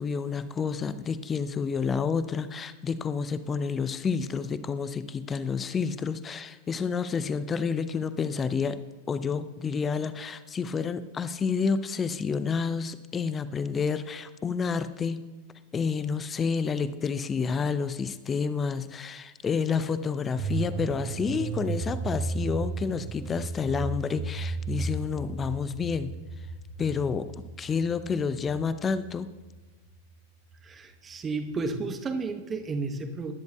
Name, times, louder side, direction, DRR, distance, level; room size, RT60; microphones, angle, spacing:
voice 1, 0.0-8.8 9.1-15.3 15.7-26.2 26.8-29.3, left 5 dB, 20° left, 14 dB, 0.6 m, -29 dB
sound 1, 20.4-30.2 30.5-30.6, right 4 dB, 50° right, 1.5 m, -35 dB
voice 2, 30.6-33.3, right 3 dB, 20° right, 6 dB, 1.0 m, -32 dB
20.5 x 10.5 x 2.3 m, 1.2 s
figure-of-eight pair, 90°, 0 cm